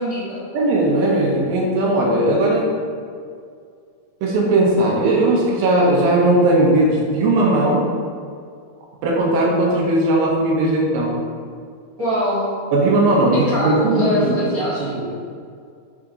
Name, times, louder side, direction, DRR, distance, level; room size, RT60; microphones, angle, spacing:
voice 1, 0.0-0.4 12.0-12.5 13.3-14.9, equal, 90° right, -9 dB, 0.7 m, -23 dB
voice 2, 0.5-2.7 4.2-7.9 9.0-11.2 12.7-14.5 14.8-15.0, right 1 dB, 75° right, -2 dB, 2.9 m, -17 dB
6.9 x 5.8 x 4.0 m, 2.2 s
omnidirectional pair, 4.5 m